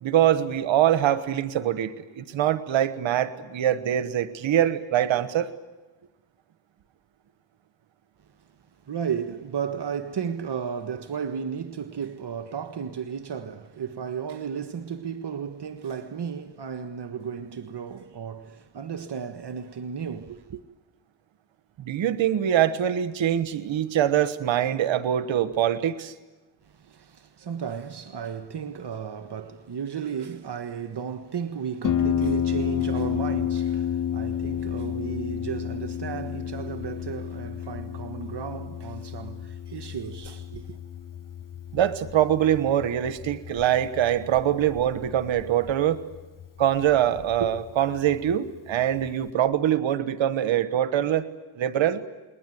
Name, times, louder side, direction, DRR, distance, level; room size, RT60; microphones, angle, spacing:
voice 1, 0.0-5.5 21.8-26.1 41.7-46.0 46.6-51.3 51.5-52.0, right 11 dB, 90° right, 1.4 m, -23 dB
voice 2, 8.8-20.6 26.7-40.8, right 7 dB, 60° right, 1.5 m, -34 dB
Harp, 31.8-49.3, left 9 dB, 45° left, 0.8 m, -32 dB
29.5 x 21.0 x 9.3 m
supercardioid pair, 45°, 45 cm